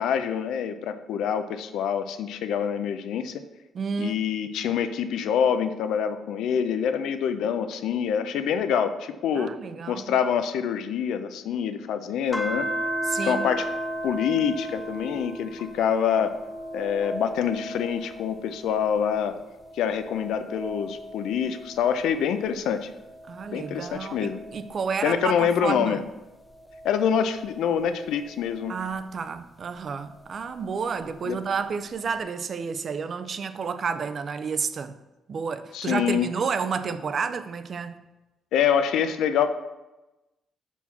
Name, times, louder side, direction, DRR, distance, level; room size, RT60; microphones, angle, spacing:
voice 1, 0.0-3.3 4.0-9.5 9.9-12.7 13.2-13.7 14.0-16.3 16.7-19.3 19.7-22.9 23.5-24.4 25.0-26.0 26.8-28.7 31.3-31.4 35.7-36.3 38.5-39.5, left 8 dB, 80° left, 0.4 m, -26 dB
voice 2, 3.7-4.2 9.3-10.2 13.1-13.5 23.3-26.0 28.7-35.0 35.3-38.0, right 5 dB, 50° right, 0.4 m, -30 dB
sound 1, 12.3-19.0 19.5-22.4 23.0-25.8 26.5-29.0 30.3-31.4, right 1 dB, 15° left, 0.7 m, -36 dB
5.8 x 4.5 x 4.2 m
cardioid pair, 90°, 0 cm